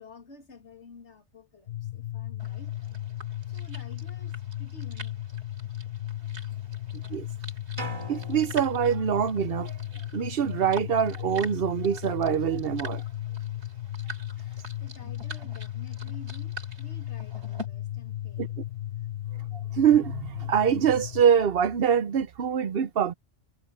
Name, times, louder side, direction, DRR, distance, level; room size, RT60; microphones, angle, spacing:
voice 1, 0.0-2.9 3.5-5.2 14.4-18.7, left 3 dB, 80° left, 2.8 m, -50 dB
sound 1, 1.7-21.2, left 13 dB, 60° left, 1.0 m, -36 dB
sound 2, 2.4-17.7, right 2 dB, 75° right, 3.2 m, -46 dB
sound 3, 7.8-9.7, right 1 dB, 25° right, 2.6 m, -41 dB
voice 2, 8.1-9.7 10.1-13.0 18.4-18.5 19.5-23.1, right 8 dB, 60° right, 0.9 m, -24 dB
omnidirectional pair, 1.2 m